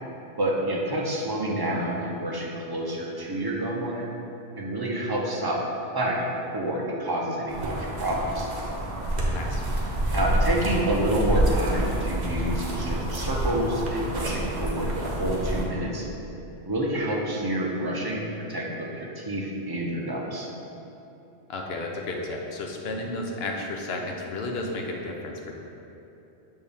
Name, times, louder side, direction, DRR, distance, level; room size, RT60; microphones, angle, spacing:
voice 1, 0.4-4.1 4.6-5.6 5.9-6.2 6.5-8.5 10.1-16.1 16.7-20.5, right 1 dB, 25° right, -2 dB, 0.5 m, -28 dB
sound 1, 7.5-15.6, right 1 dB, 45° right, 0.9 m, -28 dB
voice 2, 21.5-25.5, left 2 dB, 65° left, 1 dB, 0.9 m, -32 dB
6.7 x 4.2 x 3.5 m, 2.9 s
omnidirectional pair, 1.1 m